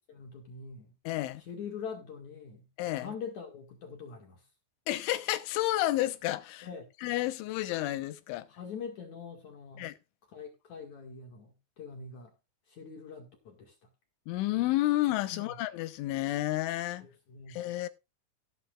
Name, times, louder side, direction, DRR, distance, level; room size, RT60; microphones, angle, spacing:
voice 1, 0.1-0.9 1.5-2.7 3.0-4.4 6.6-6.8 8.5-9.9 10.3-12.3 12.7-13.8 15.3-15.6 17.0-17.6, left 6 dB, 50° left, 2.6 m, -43 dB
voice 2, 1.1-1.4 2.8-3.1 4.9-6.7 7.0-8.5 9.8-9.9 14.3-17.1 17.5-17.9, left 16 dB, 80° left, 3.4 m, -31 dB
17.0 x 10.0 x 2.5 m
omnidirectional pair, 5.6 m